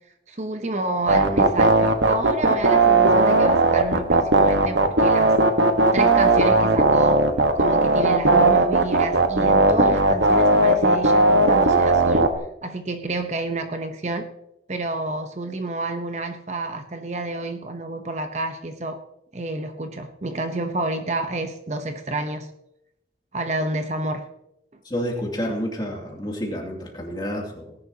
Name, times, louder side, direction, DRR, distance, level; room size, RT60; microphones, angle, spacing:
voice 1, 0.3-5.3 5.9-7.3 7.5-12.3 12.6-14.3 14.7-19.0 19.3-22.5 23.3-24.3, right 2 dB, 40° right, 7 dB, 0.9 m, -29 dB
sound 1, 1.1-12.3, right 2 dB, 85° right, 1.3 m, -17 dB
voice 2, 24.8-27.8, equal, 25° left, -1 dB, 2.7 m, -29 dB
18.5 x 11.0 x 2.9 m, 0.83 s
head